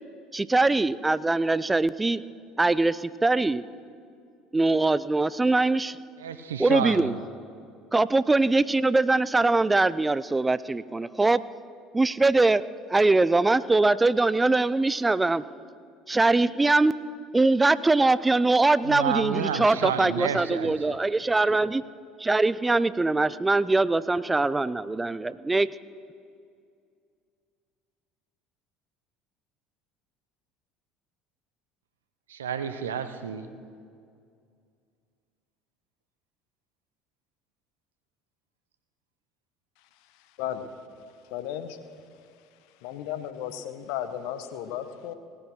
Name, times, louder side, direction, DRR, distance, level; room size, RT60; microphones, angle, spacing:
voice 1, 0.3-2.2 2.6-3.6 4.5-6.0 6.6-7.1 7.9-11.4 11.9-12.6 12.9-15.5 16.1-16.9 17.3-21.8 22.2-25.7, right 2 dB, 15° right, 18 dB, 0.5 m, -22 dB
voice 2, 6.2-7.2 18.8-21.0 32.3-33.5, right 7 dB, 80° right, 10 dB, 0.8 m, -30 dB
voice 3, 40.4-41.0 41.3-41.8 42.8-45.1, left 10 dB, 65° left, 10 dB, 1.0 m, -34 dB
18.0 x 10.0 x 6.2 m, 2.3 s
figure-of-eight pair, 65°, 0 cm